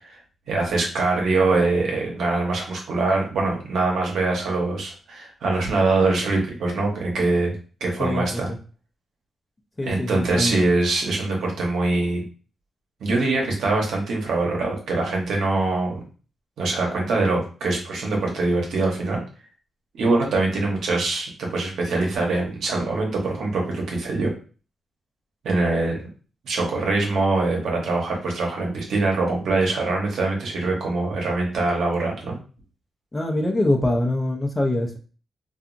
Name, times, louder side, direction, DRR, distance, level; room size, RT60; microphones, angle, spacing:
voice 1, 0.5-7.6 7.8-8.5 9.8-12.2 13.0-16.0 16.6-19.2 19.9-24.3 25.4-26.0 26.4-32.4, right 3 dB, 80° right, -1 dB, 0.9 m, -23 dB
voice 2, 9.8-10.6 33.1-35.0, left 1 dB, 25° left, 2 dB, 0.6 m, -23 dB
2.8 x 2.3 x 2.5 m, 0.38 s
cardioid pair, 80°, 0 cm